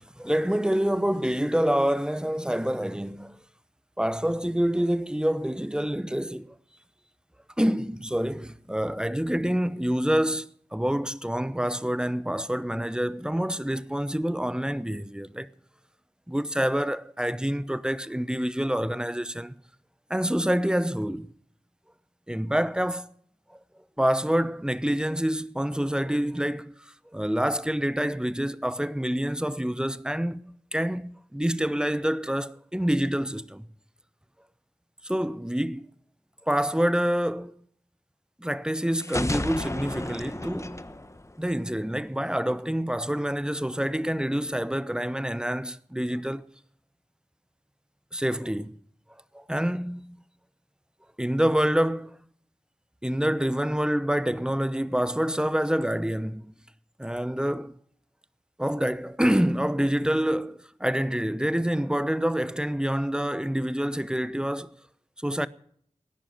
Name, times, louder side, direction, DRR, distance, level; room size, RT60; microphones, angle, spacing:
voice 1, 0.0-3.4 4.0-6.6 7.6-15.5 16.3-19.5 20.1-21.3 22.3-23.1 24.0-33.7 35.0-35.9 36.5-37.5 38.4-40.8 41.4-46.4 48.1-48.8 49.3-50.2 51.2-52.2 53.0-56.5 57.0-57.7 58.6-64.7 65.2-65.5, equal, 5° right, 0.8 m, -27 dB
sound 1, 39.0-41.9, left 1 dB, 25° left, 1.1 m, -32 dB
18.0 x 10.0 x 5.8 m
cardioid pair, 40°, 13 cm